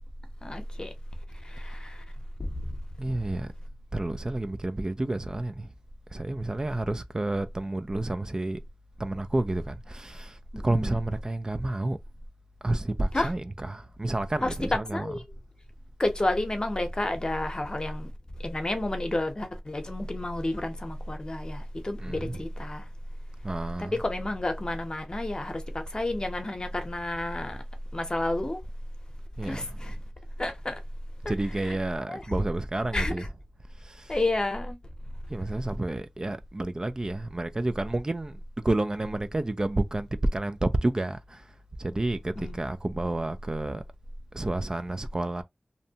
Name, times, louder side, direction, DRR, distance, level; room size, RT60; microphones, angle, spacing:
voice 1, 0.4-0.9 1.4-2.0 10.5-11.0 13.1-13.3 14.4-15.2 16.0-18.1 18.4-22.8 23.8-27.6 27.9-28.6 29.4-30.0 30.4-30.8 31.2-31.7 32.1-32.3 32.9-33.3 34.1-34.8 42.4-42.7, left 1 dB, 40° left, 0.7 m, -30 dB
voice 2, 3.0-3.5 3.9-5.7 6.1-8.6 9.0-10.4 10.6-12.0 12.6-15.2 22.0-22.4 23.4-24.0 29.4-29.9 31.3-33.3 33.8-34.2 35.3-38.4 38.6-41.4 41.8-43.8 44.3-45.4, right 2 dB, 35° right, 0.3 m, -30 dB
2.7 x 2.1 x 2.7 m
wide cardioid pair, 75°, 2 cm